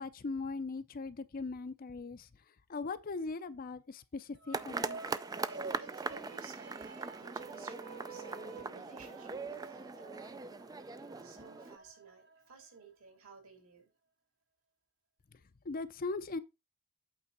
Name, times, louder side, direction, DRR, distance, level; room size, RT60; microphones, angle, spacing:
voice 1, 0.0-2.3 2.7-5.0 15.6-16.4, left 3 dB, 40° left, 0.5 m, -39 dB
sound 1, 4.4-12.9, right 4 dB, 50° right, 0.9 m, -50 dB
sound 2, 4.5-11.8, right 4 dB, 15° right, 0.3 m, -41 dB
voice 2, 5.8-13.9, right 4 dB, 65° right, 2.8 m, -56 dB
8.6 x 3.5 x 5.4 m
head